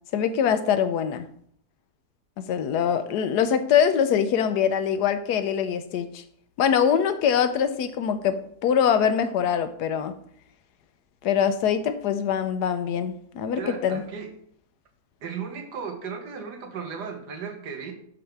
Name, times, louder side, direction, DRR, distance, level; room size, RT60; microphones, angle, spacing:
voice 1, 0.1-1.3 2.4-6.2 6.6-10.1 11.2-14.0, left 8 dB, 80° left, 10 dB, 1.2 m, -23 dB
voice 2, 13.5-14.3 15.2-17.9, right 6 dB, 85° right, 4 dB, 1.7 m, -35 dB
11.5 x 4.0 x 3.4 m, 0.65 s
omnidirectional pair, 1.7 m